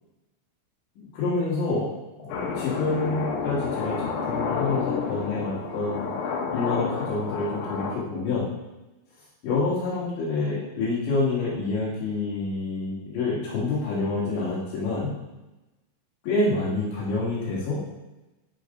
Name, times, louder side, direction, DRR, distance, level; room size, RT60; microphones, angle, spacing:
voice 1, 1.0-1.9 2.2-6.0 6.5-8.5 9.4-15.2 16.2-17.8, left 3 dB, 70° left, -8 dB, 4.2 m, -27 dB
sound 1, 2.3-7.9, left 5 dB, 85° left, 4.2 m, -30 dB
11.5 x 9.8 x 3.9 m, 1.1 s
omnidirectional pair, 5.7 m